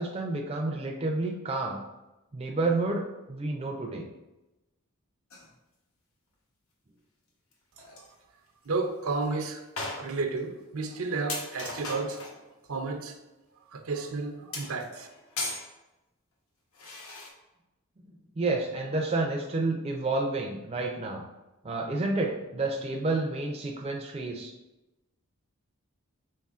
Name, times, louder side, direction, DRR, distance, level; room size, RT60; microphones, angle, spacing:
voice 1, 0.0-1.8 2.3-4.1 18.4-21.2 21.6-24.5, right 2 dB, 25° right, 1 dB, 0.4 m, -30 dB
sound 1, 5.3-5.5 7.5-7.6 7.8-8.1 8.7-8.8 9.2-9.3 9.8-10.4 10.8-10.9 11.3-12.4 14.5-15.7 16.7-17.3, left 2 dB, 75° left, 0.9 m, -37 dB
voice 2, 8.7-9.6 10.0-12.2 12.7-13.2 13.7-15.1, right 3 dB, 75° right, 5 dB, 0.5 m, -32 dB
5.4 x 3.9 x 2.4 m, 1.0 s
head